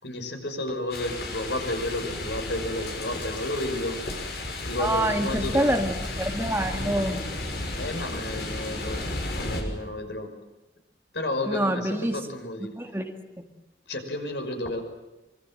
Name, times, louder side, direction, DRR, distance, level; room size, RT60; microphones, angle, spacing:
voice 1, 0.0-4.0 4.6-5.7 7.7-9.1 9.3-10.4 11.1-12.8 13.9-14.8, left 1 dB, 85° left, 5 dB, 5.9 m, -32 dB
sound 1, 0.9-9.6, left 2 dB, 65° left, 6.4 m, -33 dB
voice 2, 4.8-7.2 11.5-12.2 12.6-13.1, right 1 dB, 15° right, 5 dB, 1.9 m, -26 dB
25.5 x 25.0 x 7.7 m, 1.0 s
head